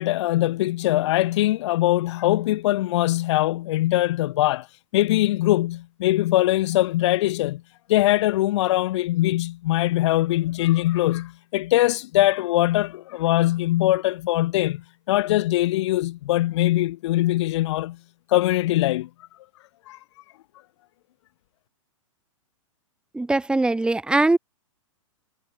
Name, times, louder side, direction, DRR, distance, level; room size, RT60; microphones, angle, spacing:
voice 1, 0.0-4.7 4.9-7.6 7.9-18.0 18.3-19.1 19.9-20.0, left 16 dB, 55° left, 0.8 m, -22 dB
voice 2, 23.1-24.4, right 2 dB, 5° right, 2.5 m, -21 dB
hypercardioid pair, 125°, 17 cm